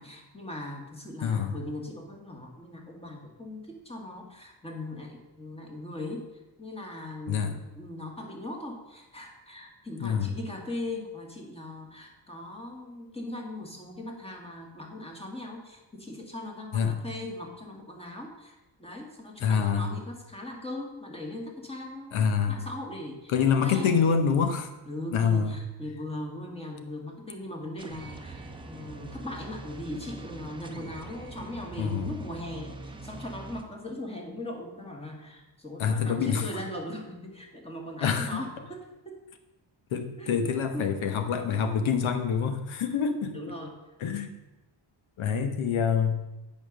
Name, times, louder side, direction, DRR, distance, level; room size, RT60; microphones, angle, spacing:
voice 1, 0.0-6.3 6.6-23.3 23.6-24.0 24.9-39.2 40.2-40.4 40.7-40.9 43.3-43.8, left 1 dB, 10° left, 1 dB, 1.9 m, -39 dB
voice 2, 1.2-1.5 7.3-7.6 10.0-10.3 16.7-16.9 19.4-19.9 22.1-22.5 23.3-24.7 25.1-25.6 31.8-32.1 35.8-36.4 38.0-38.4 39.9-43.5 44.0-44.3 45.2-46.2, left 6 dB, 75° left, 8 dB, 1.2 m, -26 dB
sound 1, 27.8-33.6, right 2 dB, 10° right, 0.8 m, -43 dB
8.9 x 5.4 x 6.4 m, 1.0 s
cardioid pair, 120°, 48 cm